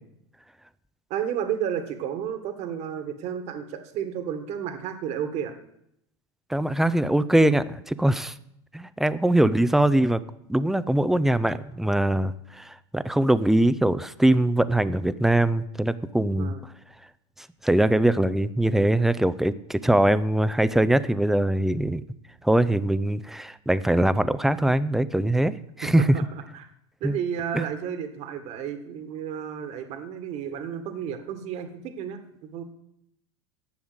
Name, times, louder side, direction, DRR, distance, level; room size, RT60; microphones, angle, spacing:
voice 1, 1.1-5.6 16.4-16.6 26.0-26.7 27.0-32.6, right 8 dB, 50° right, 8 dB, 1.7 m, -32 dB
voice 2, 6.5-8.3 8.7-10.2 10.5-16.5 17.6-22.0 22.4-26.1 27.0-27.2 27.5-27.6, right 1 dB, ahead, 15 dB, 0.6 m, -22 dB
11.0 x 7.2 x 7.9 m, 0.76 s
hypercardioid pair, 95°, 14 cm